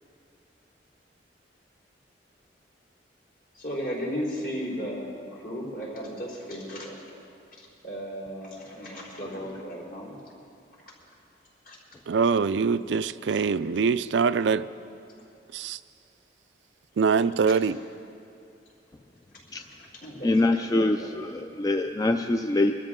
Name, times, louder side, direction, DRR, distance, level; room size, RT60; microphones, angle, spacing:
voice 1, 3.5-7.0 7.8-10.1 11.6-11.8 19.8-21.2, equal, 55° left, -3 dB, 4.4 m, -35 dB
voice 2, 12.1-14.7 15.5-15.8 17.0-17.8, right 5 dB, 85° right, 14 dB, 0.4 m, -24 dB
voice 3, 20.2-22.8, left 2 dB, 20° left, 6 dB, 0.4 m, -24 dB
24.5 x 13.0 x 3.7 m, 2.5 s
head